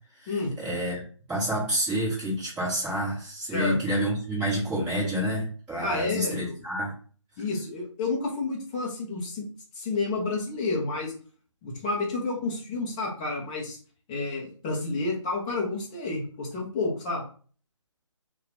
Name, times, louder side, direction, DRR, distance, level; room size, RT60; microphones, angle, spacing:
voice 1, 0.2-1.0 1.3-6.9, equal, 5° right, -9 dB, 1.2 m, -28 dB
voice 2, 5.8-6.5 7.4-9.5 9.7-11.1 11.6-13.8 14.1-17.2, left 3 dB, 15° left, -3 dB, 0.6 m, -30 dB
2.7 x 2.3 x 4.0 m, 0.42 s
figure-of-eight pair, 155°, 17 cm